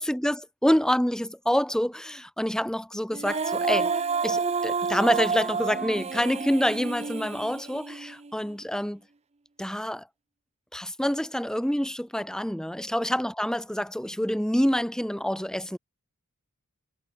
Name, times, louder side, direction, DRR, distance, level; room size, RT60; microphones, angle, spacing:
voice 1, 0.0-9.0 9.6-10.1 10.7-15.8, equal, 5° left, 1.1 m, -27 dB
Female singing, 3.1-8.3, right 5 dB, 30° right, 0.6 m, -29 dB
head